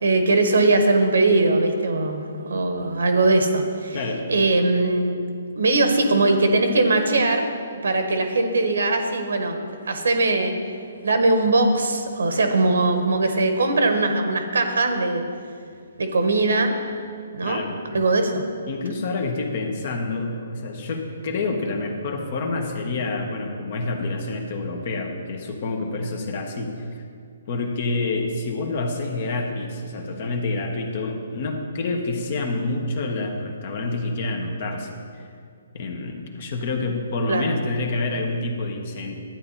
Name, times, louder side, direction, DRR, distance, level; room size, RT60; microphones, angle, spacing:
voice 1, 0.0-4.0 4.3-5.2 5.6-10.5 11.0-15.2 16.0-16.7 17.3-17.6 17.9-18.4 37.3-37.5, right 2 dB, 80° right, 6 dB, 1.3 m, -20 dB
voice 2, 17.4-17.7 18.7-27.0 27.5-34.9 35.7-39.2, left 3 dB, 50° left, 3 dB, 1.4 m, -28 dB
12.0 x 8.9 x 4.2 m, 2.3 s
hypercardioid pair, 145°, 0 cm